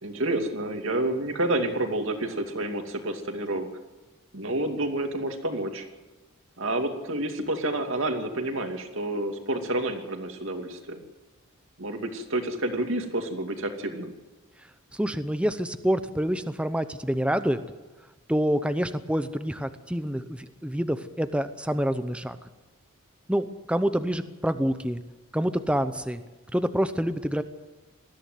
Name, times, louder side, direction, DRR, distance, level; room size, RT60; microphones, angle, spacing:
voice 1, 0.0-3.7 4.3-5.8 6.6-11.0 11.8-14.2, right 1 dB, 60° right, 5 dB, 2.5 m, -29 dB
voice 2, 14.9-17.6 18.3-22.4 23.3-25.0 25.3-26.2 26.5-27.4, equal, 5° right, 10 dB, 0.7 m, -27 dB
20.0 x 14.5 x 9.3 m, 1.1 s
head